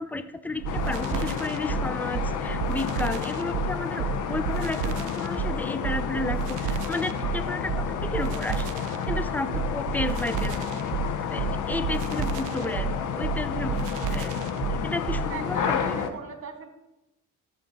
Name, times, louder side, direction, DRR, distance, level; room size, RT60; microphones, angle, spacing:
voice 1, 0.0-8.7 9.1-10.8 11.3-12.9 13.2-14.3 14.8-16.0, left 2 dB, 5° left, 11 dB, 0.5 m, -32 dB
sound 1, 0.5-15.5, left 2 dB, 50° left, 1.7 m, -50 dB
sound 2, 0.6-15.3, right 7 dB, 90° right, 0.5 m, -31 dB
sound 3, 0.7-16.1, left 7 dB, 80° left, 0.8 m, -31 dB
voice 2, 15.3-16.7, right 5 dB, 45° right, 6 dB, 1.6 m, -38 dB
13.0 x 4.4 x 4.0 m, 0.96 s
cardioid pair, 90°, 30 cm